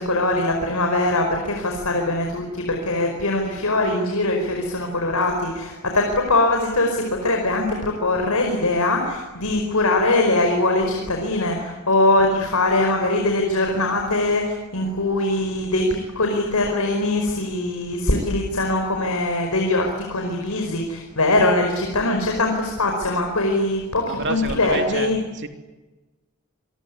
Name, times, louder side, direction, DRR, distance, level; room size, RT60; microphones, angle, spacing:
voice 1, 0.0-25.2, left 2 dB, 85° left, 3 dB, 5.1 m, -22 dB
voice 2, 24.1-25.5, right 3 dB, 55° right, 6 dB, 3.0 m, -29 dB
27.0 x 23.0 x 9.8 m, 1.2 s
head